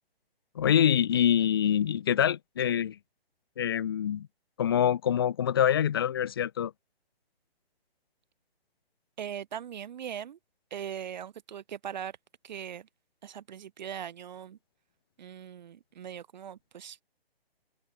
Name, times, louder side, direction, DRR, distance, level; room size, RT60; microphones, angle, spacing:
voice 1, 0.6-3.0 3.6-4.3 4.6-6.7, left 9 dB, 25° left, 0.5 m, -25 dB
voice 2, 9.2-10.4 10.7-12.1 12.4-12.9 13.2-14.6 15.2-17.0, right 9 dB, 45° right, 2.0 m, -40 dB
hypercardioid pair, 150°, 31 cm